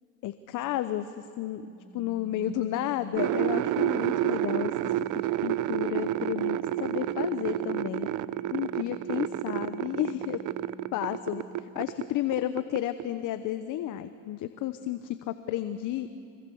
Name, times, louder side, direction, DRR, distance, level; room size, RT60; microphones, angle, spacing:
voice 1, 0.2-1.6 1.9-8.1 8.5-10.4 10.9-16.1, left 12 dB, 50° left, 11 dB, 0.9 m, -32 dB
Organ, 1.6-12.2, right 2 dB, 30° right, 1.8 m, -50 dB
sound 1, 3.2-12.1 12.3-13.0, right 13 dB, 50° right, 0.7 m, -30 dB
25.5 x 23.5 x 7.1 m, 2.5 s
supercardioid pair, 110°, 39 cm